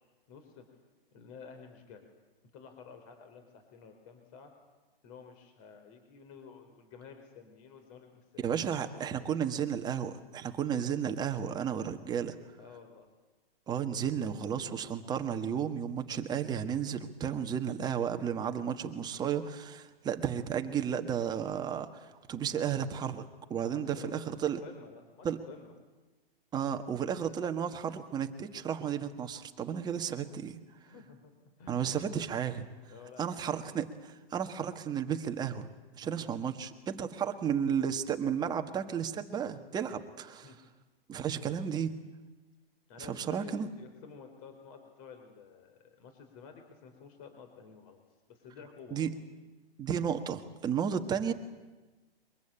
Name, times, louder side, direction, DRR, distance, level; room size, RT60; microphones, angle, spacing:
voice 1, 0.3-0.6 1.1-2.1 2.5-4.5 5.0-9.5 11.8-11.9 12.6-13.1 23.6-25.7 29.9-30.0 30.8-32.1 32.9-33.6 36.0-36.2 40.4-40.6 42.9-49.1, left 6 dB, 35° left, 6 dB, 3.9 m, -52 dB
voice 2, 8.4-12.3 13.7-23.2 23.5-24.6 25.2-25.4 26.5-30.6 31.7-32.6 33.2-35.7 36.0-40.5 41.1-41.9 43.0-43.7 48.9-49.1 49.8-51.3, right 8 dB, 15° right, 7 dB, 1.4 m, -33 dB
23.0 x 22.0 x 8.8 m, 1.2 s
hypercardioid pair, 140°, 30 cm